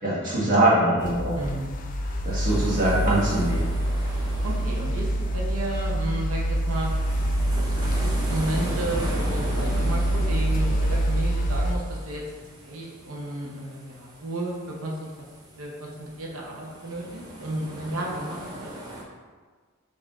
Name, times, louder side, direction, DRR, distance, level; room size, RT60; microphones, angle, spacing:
voice 1, 0.0-1.4 2.2-3.6, right 1 dB, 40° right, -7 dB, 1.3 m, -22 dB
sound 1, 1.0-11.8, right 1 dB, 40° left, 0.4 m, -26 dB
voice 2, 1.4-1.7 4.4-6.9 8.0-12.2 12.6-15.1 15.5-18.7, right 1 dB, 70° right, -3 dB, 0.8 m, -32 dB
sound 2, 2.2-19.0, right 1 dB, 20° right, 0.8 m, -39 dB
5.5 x 2.7 x 3.6 m, 1.5 s
head